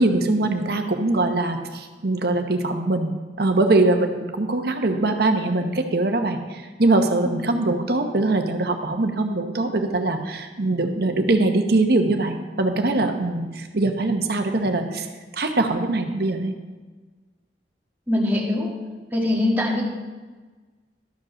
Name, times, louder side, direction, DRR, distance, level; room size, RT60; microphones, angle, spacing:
voice 1, 0.0-15.1 15.3-16.5, right 2 dB, 55° right, 6 dB, 1.0 m, -22 dB
voice 2, 18.1-18.7 19.1-19.8, left 1 dB, 10° right, -3 dB, 1.7 m, -22 dB
12.5 x 5.2 x 6.3 m, 1.3 s
head